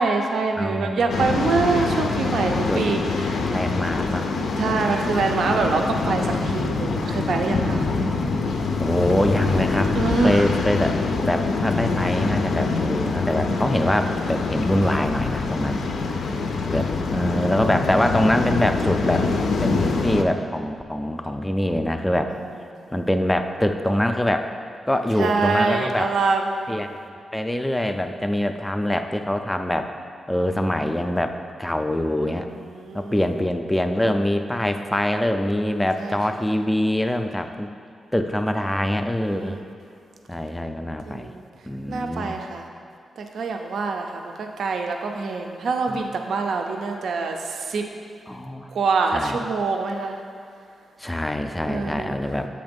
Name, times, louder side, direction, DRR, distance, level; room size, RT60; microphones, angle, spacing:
voice 1, 0.0-3.0 3.3-3.4 4.6-7.8 9.9-10.4 16.2-16.8 25.2-26.7 32.8-33.2 36.0-36.2 39.2-39.6 41.1-41.4 41.9-42.6 43.2-47.8 48.7-50.2 51.6-52.2, right 4 dB, 70° right, 3 dB, 0.4 m, -25 dB
voice 2, 0.6-1.6 2.7-2.9 3.5-4.2 7.5-8.2 8.8-10.9 11.2-15.8 16.7-19.3 19.6-22.3 22.9-24.5 24.9-26.1 26.7-27.0 27.3-29.9 30.3-32.5 32.9-37.7 38.1-39.6 40.3-41.3 41.7-42.4 45.9-46.0 48.3-48.7 49.1-49.4 51.0-52.5, left 1 dB, 10° left, 6 dB, 0.3 m, -24 dB
Waves surf, 1.1-20.2, left 4 dB, 70° left, 0.4 m, -25 dB
7.8 x 3.2 x 5.2 m, 2.5 s
wide cardioid pair, 130°, 0 cm